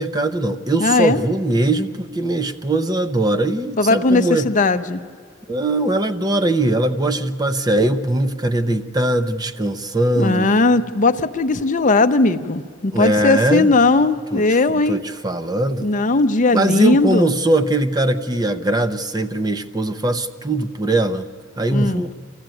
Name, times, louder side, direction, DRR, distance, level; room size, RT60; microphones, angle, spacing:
voice 1, 0.0-4.5 5.5-10.5 12.9-13.7 14.3-15.9 16.5-21.3 21.6-22.1, right 1 dB, 20° right, 9 dB, 0.7 m, -20 dB
voice 2, 0.8-1.2 3.8-5.0 10.2-15.0 15.8-17.3 21.7-22.0, left 3 dB, 40° left, 9 dB, 0.6 m, -18 dB
25.5 x 14.5 x 9.1 m, 2.1 s
head